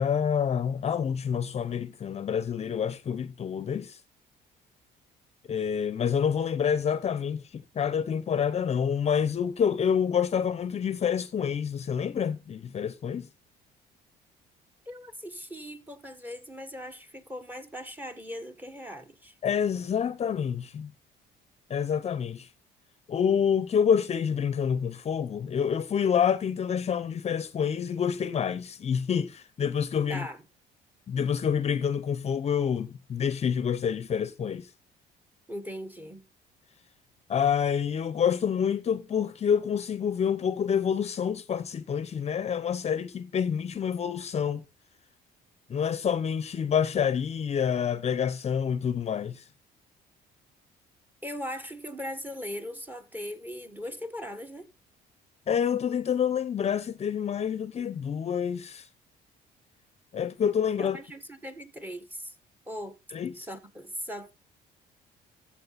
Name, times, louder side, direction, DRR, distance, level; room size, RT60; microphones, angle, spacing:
voice 1, 0.0-4.0 5.5-13.3 19.4-20.9 21.7-22.5 23.1-30.3 31.1-34.7 37.3-44.6 45.7-49.4 55.5-58.9 60.1-61.0 63.1-63.4, left 7 dB, 40° left, 0.8 m, -27 dB
voice 2, 14.9-19.3 30.1-30.4 35.5-36.2 51.2-54.7 60.8-62.3 62.7-63.0 63.3-64.3, equal, 10° right, 1.6 m, -39 dB
13.5 x 7.6 x 4.1 m
cardioid pair, 110°, 17 cm